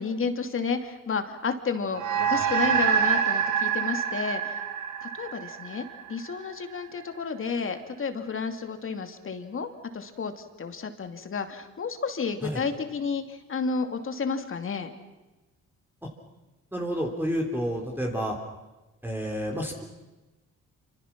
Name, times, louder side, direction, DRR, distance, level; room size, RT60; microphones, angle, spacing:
voice 1, 0.0-4.6 5.0-9.7 9.9-14.9, left 5 dB, 45° left, 7 dB, 2.7 m, -31 dB
sound 1, 1.9-6.6, right 7 dB, 80° right, 1.9 m, -26 dB
voice 2, 16.7-18.4 19.0-19.8, equal, 5° right, 0 dB, 3.6 m, -30 dB
27.5 x 26.0 x 6.1 m, 1.1 s
cardioid pair, 90°, 30 cm